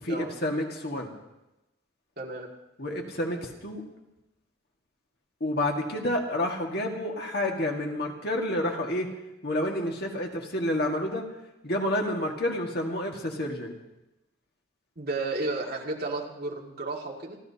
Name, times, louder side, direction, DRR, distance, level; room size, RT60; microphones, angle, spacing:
voice 1, 0.0-1.1 2.8-3.8 5.4-9.1 9.4-11.2 11.6-13.7, left 1 dB, 50° left, 1 dB, 1.9 m, -29 dB
voice 2, 2.2-2.5 15.0-17.4, right 2 dB, 50° right, -1 dB, 2.2 m, -33 dB
28.5 x 13.5 x 2.9 m, 0.95 s
head